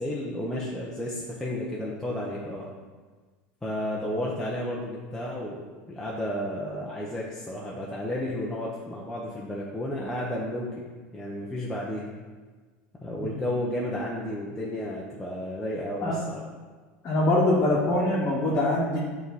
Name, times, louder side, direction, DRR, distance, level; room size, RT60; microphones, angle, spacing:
voice 1, 0.0-2.7 3.6-5.6 5.9-10.7 11.1-12.1 13.0-16.4, left 1 dB, 10° left, -5 dB, 0.8 m, -32 dB
voice 2, 17.0-19.0, left 1 dB, 40° left, -6 dB, 1.2 m, -23 dB
6.9 x 3.4 x 4.1 m, 1.4 s
supercardioid pair, 120°, 6 cm